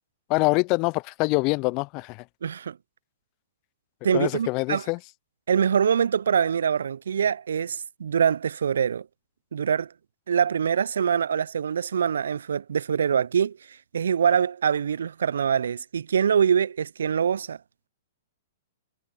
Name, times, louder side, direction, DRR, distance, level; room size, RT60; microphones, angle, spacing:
voice 1, 0.3-2.2 4.1-5.0, left 27 dB, 40° left, 0.6 m, -25 dB
voice 2, 2.4-2.8 4.0-4.8 5.5-9.1 9.5-9.9 10.3-17.6, right 7 dB, 70° right, 0.6 m, -24 dB
figure-of-eight pair, 110°, 0 cm